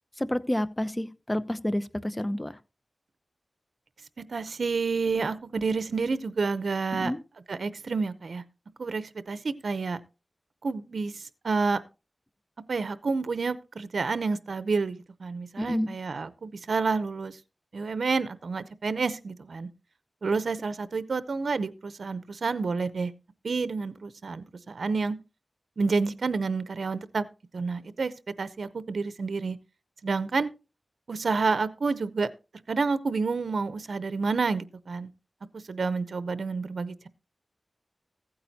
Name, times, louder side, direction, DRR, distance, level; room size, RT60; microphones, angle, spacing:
voice 1, 0.2-2.5 6.9-7.2 15.6-15.9, left 1 dB, 20° left, 0.8 m, -29 dB
voice 2, 4.3-7.1 7.5-8.4 8.8-10.0 10.6-11.8 12.7-17.4 17.7-19.7 20.2-23.1 23.4-25.2 25.8-27.3 27.5-28.1 28.4-29.6 30.0-30.5 31.1-32.3 32.7-35.1 35.5-37.1, right 4 dB, 85° right, 0.6 m, -29 dB
15.5 x 8.7 x 2.8 m
wide cardioid pair, 55°, 0 cm